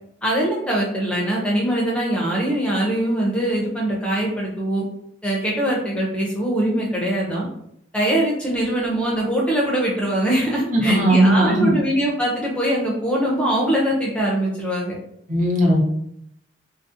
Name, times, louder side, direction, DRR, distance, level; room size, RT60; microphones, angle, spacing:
voice 1, 0.2-4.8 5.2-7.5 7.9-14.9, right 1 dB, 5° left, -4 dB, 0.5 m, -22 dB
voice 2, 10.7-11.7 15.3-15.8, right 1 dB, 45° right, -2 dB, 0.6 m, -17 dB
2.6 x 2.0 x 2.4 m, 0.74 s
head